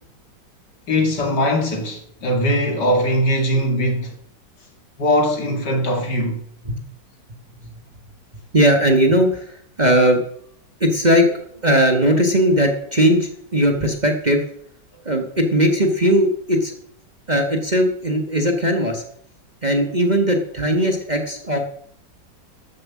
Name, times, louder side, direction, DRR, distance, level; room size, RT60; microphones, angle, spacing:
voice 1, 0.9-4.1 5.0-6.4, equal, 65° left, 2.9 m, -20 dB
voice 2, 8.5-10.2 10.8-14.4 15.0-16.7 17.3-19.0 19.6-21.6, equal, 25° right, 1.4 m, -18 dB
13.0 x 7.7 x 7.2 m
omnidirectional pair, 2.0 m